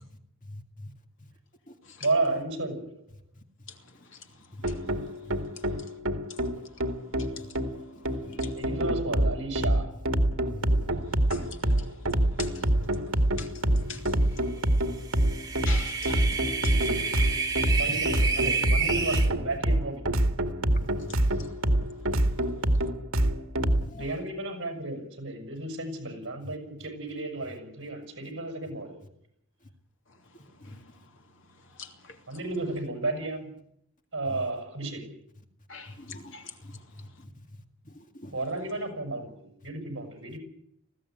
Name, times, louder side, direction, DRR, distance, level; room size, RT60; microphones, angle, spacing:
voice 1, 2.0-2.9 8.6-10.0 17.8-20.1 24.0-29.0 32.3-33.6 34.1-35.2 38.3-40.4, right 2 dB, 55° right, 6.9 m, -33 dB
voice 2, 3.7-4.3 4.6-5.2 5.5-6.0 6.3-7.6 7.9-8.6 11.1-14.5 15.3-17.8 21.1-21.5 30.6-31.1 31.6-32.2 35.7-36.4 37.0-37.1, left 5 dB, 60° left, 2.9 m, -46 dB
sound 1, 4.6-23.9, right 1 dB, 75° right, 2.1 m, -26 dB
voice 3, 7.9-8.4 10.5-10.8 13.5-14.2 16.9-17.0 17.9-18.0 20.7-21.2 22.3-22.4 23.8-24.0 30.7-30.8 36.0-36.2 37.2-37.3 37.9-38.3, left 1 dB, 35° left, 2.2 m, -44 dB
sound 2, 15.0-19.3, right 4 dB, 20° right, 2.5 m, -30 dB
20.5 x 16.0 x 9.4 m
head